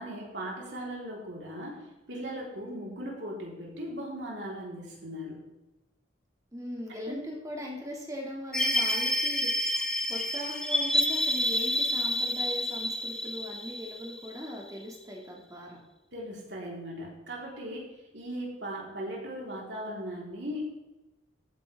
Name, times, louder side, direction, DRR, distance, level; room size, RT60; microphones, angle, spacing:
voice 1, 0.0-5.4 7.1-7.2 16.1-20.8, equal, 65° right, -3 dB, 4.1 m, -38 dB
voice 2, 6.5-9.5 10.1-15.8, equal, 20° right, -1 dB, 2.4 m, -39 dB
sound 1, 8.5-14.8, left 1 dB, 5° left, 1.0 m, -29 dB
14.5 x 9.3 x 3.6 m, 1.0 s
head